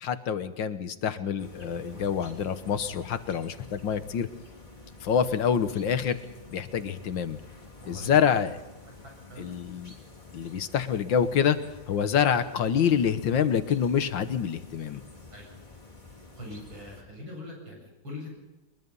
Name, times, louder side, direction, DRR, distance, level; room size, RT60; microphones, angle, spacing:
voice 1, 0.0-4.3 5.0-6.2 6.5-7.4 7.9-8.6 9.4-9.9 10.3-11.6 11.9-15.0, left 8 dB, 75° left, 11 dB, 1.8 m, -26 dB
sound 1, 1.4-17.0, left 3 dB, 25° left, 3.6 m, -49 dB
voice 2, 7.8-8.3 9.0-9.6 15.3-15.6 16.4-18.3, left 1 dB, 85° right, 0 dB, 8.6 m, -43 dB
22.5 x 21.5 x 5.5 m, 1.0 s
omnidirectional pair, 2.1 m